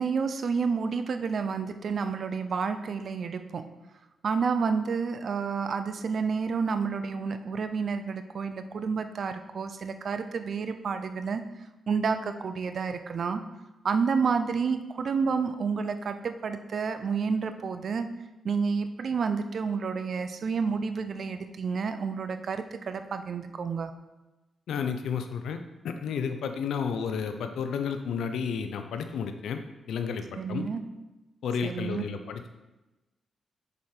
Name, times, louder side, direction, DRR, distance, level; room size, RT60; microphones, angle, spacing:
voice 1, 0.0-3.6 4.2-11.4 11.9-13.4 13.8-18.1 18.4-23.9 30.4-30.8 31.6-32.1, right 5 dB, 60° right, 9 dB, 0.6 m, -30 dB
voice 2, 24.7-25.6 25.8-29.6 29.9-30.2 30.5-30.7 31.4-32.5, left 6 dB, 85° left, 7 dB, 0.6 m, -31 dB
7.0 x 4.9 x 4.4 m, 1.0 s
cardioid pair, 85°, 0 cm